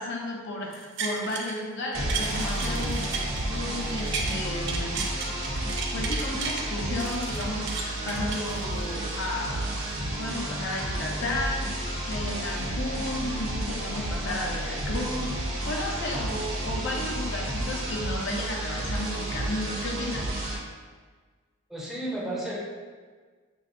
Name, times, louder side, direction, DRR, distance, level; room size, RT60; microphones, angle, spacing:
voice 1, 0.0-3.2 3.5-5.0 5.9-9.8 10.2-20.3, left 1 dB, 65° left, -1 dB, 0.6 m, -33 dB
sound 1, 0.7-1.6 1.9-4.4 4.7-6.6 7.0-9.0 9.5-9.6, right 5 dB, 60° right, 0.5 m, -34 dB
sound 2, 1.9-20.6, right 1 dB, 85° right, 0.8 m, -31 dB
voice 2, 21.7-22.6, right 1 dB, ahead, -6 dB, 0.6 m, -32 dB
5.6 x 2.1 x 2.6 m, 1.5 s
head